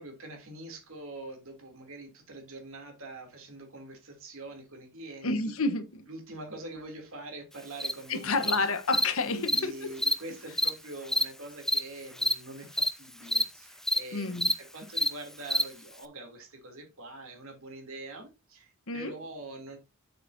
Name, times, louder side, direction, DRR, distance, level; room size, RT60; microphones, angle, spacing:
voice 1, 0.0-5.5 6.1-8.6 9.3-19.8, right 2 dB, 65° right, 3.1 m, -44 dB
voice 2, 5.2-6.1 8.1-9.9 14.1-14.5 18.9-19.1, left 3 dB, 65° left, 1.2 m, -30 dB
Cricket, 7.8-7.9 8.4-8.5 8.9-9.0 9.5-9.6 10.0-10.1 10.6-10.7 11.1-11.2 11.7-11.8 12.2-12.3 12.8-12.9 13.3-13.4 13.9-14.0 14.4-14.5 15.0-15.1 15.5-15.6, left 1 dB, ahead, 0.6 m, -25 dB
8.1 x 7.6 x 2.8 m
head